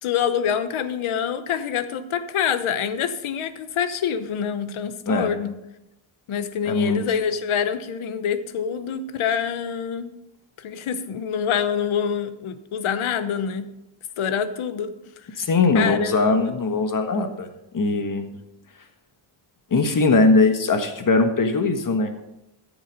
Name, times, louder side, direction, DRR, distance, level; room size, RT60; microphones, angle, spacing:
voice 1, 0.0-5.6 6.3-10.1 10.6-13.7 14.2-14.9 15.3-15.4 15.7-16.5, left 8 dB, 80° left, 12 dB, 1.0 m, -26 dB
voice 2, 6.6-7.0 15.4-17.5 17.7-18.3 19.7-22.2, left 3 dB, 40° left, 6 dB, 1.5 m, -20 dB
13.0 x 7.5 x 5.3 m, 0.90 s
wide cardioid pair, 130°, 48 cm